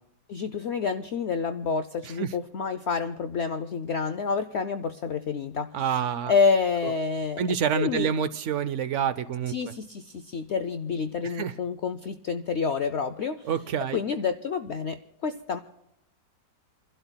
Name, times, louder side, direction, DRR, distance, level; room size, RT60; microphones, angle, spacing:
voice 1, 0.3-5.7 6.3-7.4 7.7-8.1 9.5-13.4 13.9-15.6, left 5 dB, 80° left, 10 dB, 0.6 m, -28 dB
voice 2, 5.7-6.3 6.8-6.9 7.4-9.5 11.2-11.5 13.4-14.0, right 7 dB, 70° right, 14 dB, 0.7 m, -27 dB
29.5 x 12.0 x 2.2 m, 0.84 s
omnidirectional pair, 1.8 m